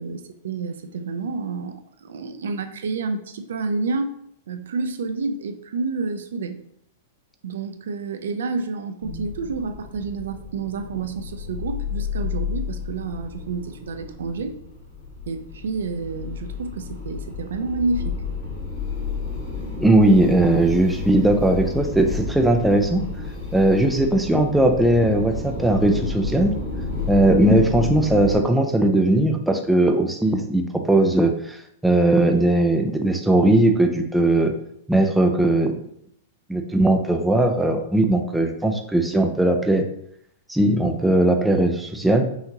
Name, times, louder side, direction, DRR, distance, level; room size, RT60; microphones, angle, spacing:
voice 1, 0.0-4.1 4.5-6.6 7.4-14.5 15.3-18.2, right 4 dB, 85° right, 8 dB, 0.5 m, -29 dB
sound 1, 9.0-28.3, left 4 dB, 25° left, 1.7 m, -31 dB
voice 2, 19.8-23.0 23.5-26.5 27.1-31.6 31.8-34.5 34.9-35.7 36.5-39.9 40.5-42.2, right 1 dB, 5° right, 4 dB, 0.3 m, -19 dB
5.6 x 2.9 x 2.8 m, 0.72 s
supercardioid pair, 165°, 0 cm